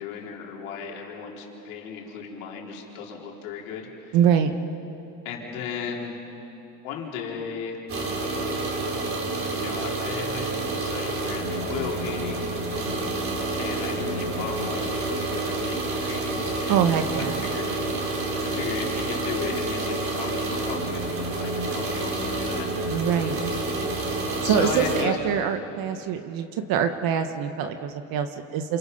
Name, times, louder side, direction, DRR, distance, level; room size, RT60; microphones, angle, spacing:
voice 1, 0.0-4.2 5.2-6.2 6.8-7.8 9.5-12.5 13.6-17.7 18.4-23.1 24.4-25.2, left 6 dB, 90° left, -2 dB, 4.3 m, -35 dB
voice 2, 4.1-4.5 16.7-17.4 22.9-23.4 24.4-28.8, right 8 dB, 60° right, 7 dB, 1.4 m, -24 dB
sound 1, 7.9-25.0, right 2 dB, 30° right, 3.9 m, -28 dB
28.0 x 28.0 x 5.5 m, 3.0 s
supercardioid pair, 115°, 40 cm